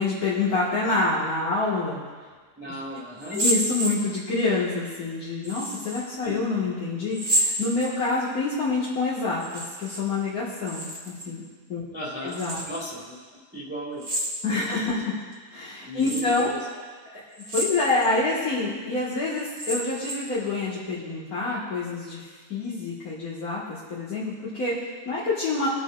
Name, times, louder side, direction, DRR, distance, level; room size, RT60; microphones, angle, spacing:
voice 1, 0.0-2.0 3.3-10.9 11.2-11.4 11.7-11.8 12.2-12.6 14.4-15.1 15.5-16.5 17.1-17.2 17.5-25.7, left 3 dB, 65° left, -9 dB, 2.4 m, -27 dB
voice 2, 2.6-3.4 6.2-6.4 11.9-12.4 12.7-13.2 13.5-14.1 14.5-14.6 15.9-16.6, equal, 5° right, -4 dB, 1.9 m, -36 dB
sound 1, 3.2-4.4 5.4-6.0 7.1-8.3 9.3-10.0 10.3-11.3 12.3-12.9 14.0-14.8 15.3-15.4 16.0-16.5 17.3-18.1 18.6-18.7 19.4-20.4, right 1 dB, 65° right, 2.2 m, -29 dB
24.0 x 8.1 x 2.6 m, 1.5 s
omnidirectional pair, 1.7 m